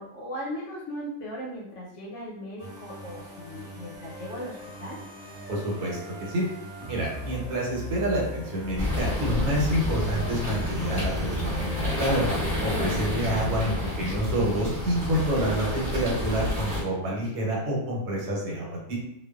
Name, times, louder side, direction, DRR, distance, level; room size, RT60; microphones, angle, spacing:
voice 1, 0.0-5.0, equal, 65° left, -4 dB, 0.8 m, -38 dB
sound 1, 2.6-13.4, right 1 dB, 50° right, 0.8 m, -38 dB
voice 2, 5.5-6.5 6.8-12.3 12.6-19.0, right 1 dB, 85° right, -3 dB, 1.3 m, -28 dB
sound 2, 8.8-16.8, left 1 dB, 15° right, 0.9 m, -29 dB
2.5 x 2.2 x 2.3 m, 0.82 s
omnidirectional pair, 1.6 m